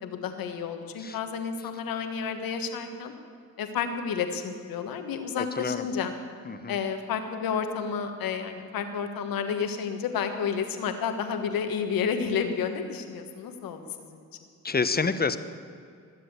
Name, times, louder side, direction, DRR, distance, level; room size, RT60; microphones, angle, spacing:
voice 1, 0.0-3.1 3.6-6.1 6.7-14.2, left 6 dB, 90° left, 7 dB, 1.4 m, -31 dB
voice 2, 5.4-5.9 6.5-6.8 14.6-15.4, left 4 dB, 30° left, 11 dB, 1.0 m, -28 dB
20.0 x 7.7 x 8.2 m, 2.3 s
cardioid pair, 65°, 34 cm